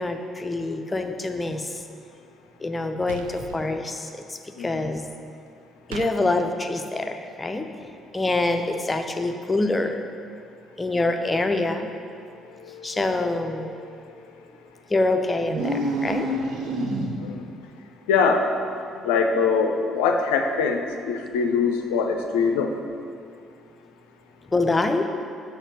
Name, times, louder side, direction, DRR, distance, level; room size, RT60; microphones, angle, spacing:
voice 1, 0.0-1.7 2.6-5.1 5.9-7.7 8.1-10.0 10.8-11.9 12.8-13.7 14.9-16.3 24.5-25.1, left 2 dB, 20° left, 6 dB, 0.6 m, -25 dB
sound 1, 3.1-3.6 5.9-6.1, right 7 dB, 80° right, 0.3 m, -38 dB
voice 2, 12.7-14.0 17.2-17.5 18.1-18.5 19.0-22.7, left 5 dB, 70° left, 4 dB, 0.5 m, -24 dB
sound 2, 15.4-17.5, right 1 dB, 60° right, 0.8 m, -27 dB
6.4 x 4.4 x 6.4 m, 2.4 s
figure-of-eight pair, 50°, 0 cm